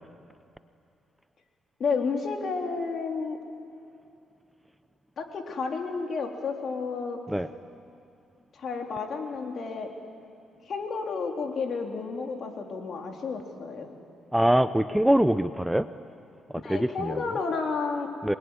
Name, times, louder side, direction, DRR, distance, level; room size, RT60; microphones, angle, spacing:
voice 1, 1.8-3.4 5.2-7.2 8.5-9.9 10.7-13.9 16.5-18.1, left 4 dB, 55° left, 2 dB, 3.5 m, -31 dB
voice 2, 14.3-15.9 16.7-17.2 18.2-18.4, right 1 dB, 5° right, 12 dB, 0.6 m, -23 dB
26.0 x 21.5 x 9.7 m, 2.6 s
cardioid pair, 90°, 0 cm